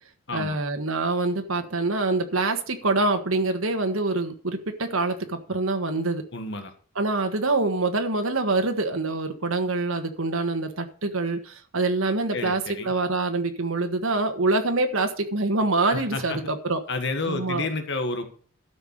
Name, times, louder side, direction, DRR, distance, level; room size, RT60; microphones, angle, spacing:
voice 1, 0.3-6.2 6.9-16.8 17.3-17.7, right 2 dB, 75° right, 5 dB, 1.5 m, -25 dB
voice 2, 6.3-6.7 12.3-12.9 15.9-16.4 16.9-18.2, left 3 dB, 55° left, 7 dB, 1.6 m, -30 dB
12.5 x 5.6 x 6.6 m, 0.43 s
head